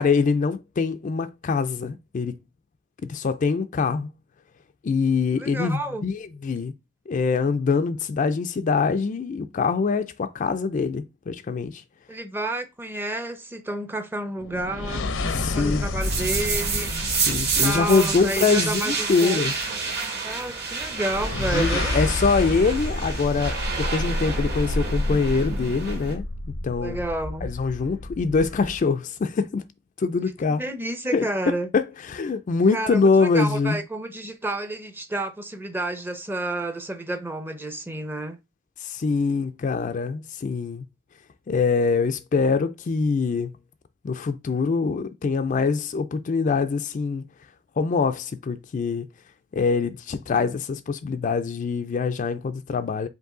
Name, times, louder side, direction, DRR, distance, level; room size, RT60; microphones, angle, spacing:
voice 1, 0.0-2.4 3.1-4.1 4.8-6.7 7.1-11.8 15.3-15.9 17.3-19.5 21.5-26.2 26.6-27.0 27.4-29.6 30.0-30.6 31.1-33.8 38.8-40.8 41.5-43.5 44.0-47.2 47.8-49.1 49.5-53.1, left 4 dB, 40° left, 0.4 m, -24 dB
voice 2, 5.4-6.0 12.1-15.0 15.5-16.9 17.6-19.4 20.2-22.1 26.8-27.5 30.6-31.7 32.7-38.4, right 1 dB, 10° right, 0.6 m, -30 dB
sound 1, 14.4-18.8 20.9-28.9, left 2 dB, 80° left, 0.7 m, -30 dB
sound 2, 16.0-26.1, right 5 dB, 60° right, 2.0 m, -29 dB
5.3 x 2.7 x 3.7 m
head